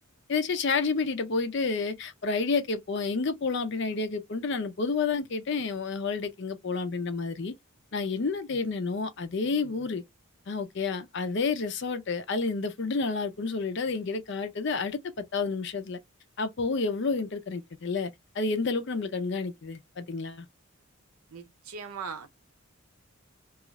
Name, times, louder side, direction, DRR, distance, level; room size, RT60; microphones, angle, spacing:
voice 1, 0.3-7.5 7.9-10.0 10.5-16.0 16.4-20.5, left 4 dB, 55° left, 0.5 m, -30 dB
voice 2, 21.3-22.3, right 5 dB, 85° right, 0.6 m, -39 dB
2.4 x 2.4 x 3.0 m
head